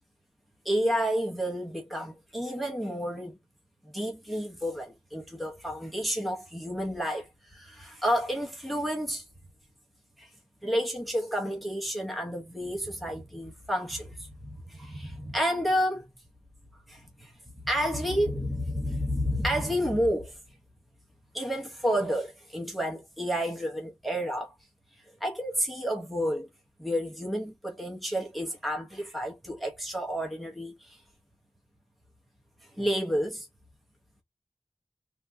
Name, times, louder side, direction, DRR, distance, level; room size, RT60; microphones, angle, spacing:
voice 1, 0.6-3.4 3.8-9.2 10.2-10.3 10.6-16.1 16.9-20.4 21.3-24.5 25.2-26.5 26.8-31.0 32.8-33.5, equal, ahead, 1.0 m, -30 dB
3.2 x 2.8 x 2.2 m
wide cardioid pair, 55°, 10 cm